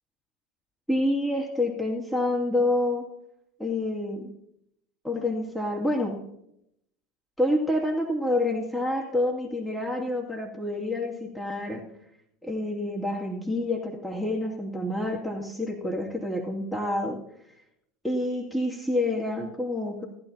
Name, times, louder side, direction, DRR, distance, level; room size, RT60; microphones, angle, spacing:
voice 1, 0.9-3.0 3.6-4.3 5.0-6.2 7.4-11.8 12.4-17.2 18.0-20.1, left 1 dB, 5° left, -1 dB, 2.4 m, -28 dB
18.5 x 11.5 x 2.9 m, 0.79 s
hypercardioid pair, 85°, 0 cm